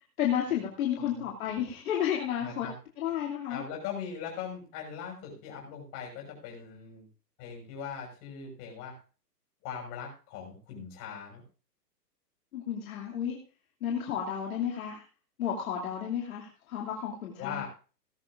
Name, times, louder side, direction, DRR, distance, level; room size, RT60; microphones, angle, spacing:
voice 1, 0.2-2.7 3.0-3.6 12.5-13.4 13.8-15.0 15.4-17.6, left 9 dB, 55° left, -3 dB, 2.7 m, -32 dB
voice 2, 2.4-2.7 3.5-7.1 7.4-8.9 9.6-11.4 17.4-17.6, left 7 dB, 30° left, 0 dB, 6.2 m, -40 dB
19.0 x 12.5 x 2.5 m, 0.37 s
hypercardioid pair, 155°, 49 cm